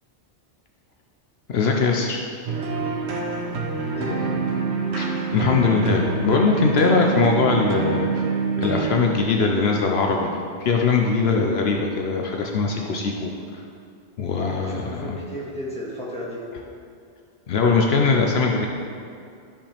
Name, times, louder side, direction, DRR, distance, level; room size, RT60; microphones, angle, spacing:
voice 1, 1.5-2.2 4.9-8.1 8.6-13.3 14.2-15.2 17.5-18.7, left 4 dB, 70° left, 1 dB, 0.9 m, -21 dB
sound 1, 2.5-9.0, right 4 dB, 80° right, 1.1 m, -26 dB
voice 2, 3.8-4.2 14.3-16.4, equal, 5° left, -6 dB, 1.8 m, -34 dB
12.5 x 5.4 x 3.4 m, 2.4 s
omnidirectional pair, 1.1 m